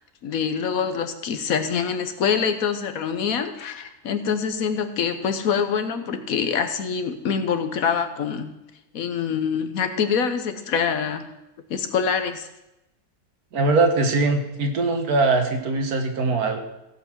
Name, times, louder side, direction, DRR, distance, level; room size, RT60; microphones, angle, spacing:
voice 1, 0.2-8.5 8.9-11.3 11.7-12.5, left 6 dB, 65° left, 8 dB, 1.3 m, -25 dB
voice 2, 13.5-16.6, right 3 dB, 75° right, 5 dB, 1.8 m, -21 dB
16.5 x 5.6 x 6.1 m, 0.93 s
omnidirectional pair, 1.6 m